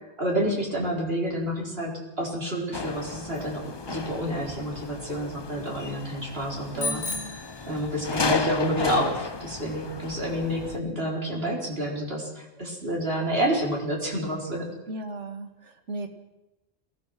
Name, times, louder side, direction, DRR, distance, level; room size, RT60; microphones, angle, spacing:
voice 1, 0.2-7.0 7.7-14.7, equal, 55° right, -1 dB, 4.5 m, -29 dB
sound 1, 2.7-10.8, left 4 dB, 30° left, 0.6 m, -34 dB
voice 2, 6.7-7.4 14.9-16.1, right 1 dB, 90° right, 6 dB, 2.4 m, -37 dB
Bicycle bell, 6.8-8.3, left 3 dB, 85° left, 3.2 m, -34 dB
23.0 x 18.0 x 6.1 m, 1.0 s
omnidirectional pair, 1.2 m